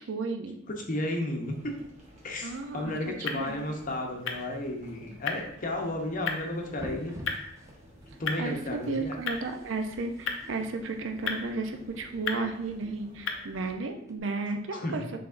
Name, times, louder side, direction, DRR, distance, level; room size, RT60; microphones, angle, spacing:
voice 1, 0.1-0.6 2.4-3.0 3.3-3.7 8.4-15.0, right 3 dB, 70° right, 5 dB, 0.5 m, -33 dB
voice 2, 0.7-1.7 2.2-7.2 8.2-9.2 14.7-15.0, left 1 dB, 45° left, 2 dB, 0.7 m, -33 dB
sound 1, 1.4-13.7, equal, 35° right, 1.1 m, -55 dB
sound 2, 2.4-13.7, left 5 dB, 75° left, 0.6 m, -39 dB
sound 3, 6.7-14.2, equal, 15° right, 0.5 m, -49 dB
5.7 x 3.4 x 2.5 m, 0.75 s
head